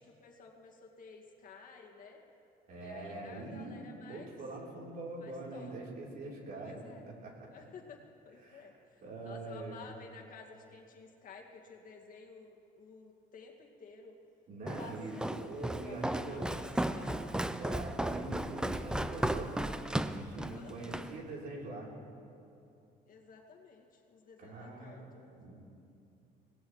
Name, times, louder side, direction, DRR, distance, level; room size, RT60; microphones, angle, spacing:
voice 1, 0.0-2.2 2.8-4.4 5.2-5.8 6.6-7.0 7.5-14.2 14.8-17.3 20.5-21.1 23.1-25.4, left 5 dB, 55° left, 0 dB, 2.1 m, -53 dB
voice 2, 2.7-3.7 4.1-6.9 7.2-7.3 8.4-8.7 9.0-9.8 14.5-16.5 17.6-19.5 20.1-21.9 24.4-25.1 25.4-25.5, right 2 dB, 60° right, -3 dB, 3.8 m, -43 dB
Walk footsteps, 14.7-21.1, right 1 dB, 5° right, 0.5 m, -35 dB
24.0 x 18.0 x 3.2 m, 2.7 s
cardioid pair, 110°, 17 cm